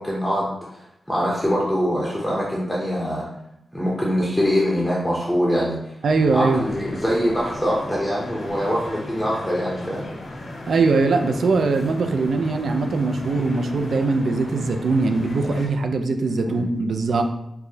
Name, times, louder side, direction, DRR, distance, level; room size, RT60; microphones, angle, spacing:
voice 1, 0.0-3.2 3.7-5.8 6.3-10.1 16.4-16.7, equal, 5° left, -5 dB, 0.6 m, -23 dB
sound 1, 6.0-15.7, left 1 dB, 75° left, 0.9 m, -36 dB
voice 2, 6.0-6.6 10.7-17.2, right 3 dB, 70° right, 5 dB, 0.3 m, -21 dB
4.5 x 2.1 x 2.6 m, 0.82 s
wide cardioid pair, 140°, 0 cm